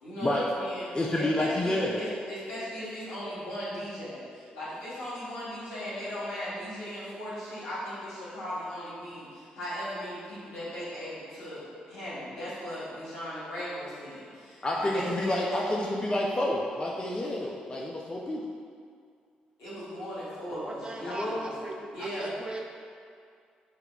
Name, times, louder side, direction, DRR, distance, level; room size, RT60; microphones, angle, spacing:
voice 1, 0.0-0.9 1.1-16.1 19.6-21.5 21.9-22.3, equal, 75° left, -10 dB, 1.4 m, -37 dB
voice 2, 0.9-2.0 14.6-18.5 21.0-21.5, left 1 dB, 25° left, -2 dB, 0.4 m, -29 dB
voice 3, 20.5-22.6, right 2 dB, 25° right, 0 dB, 0.5 m, -39 dB
6.4 x 2.2 x 2.3 m, 2.2 s
hypercardioid pair, 45°, 4 cm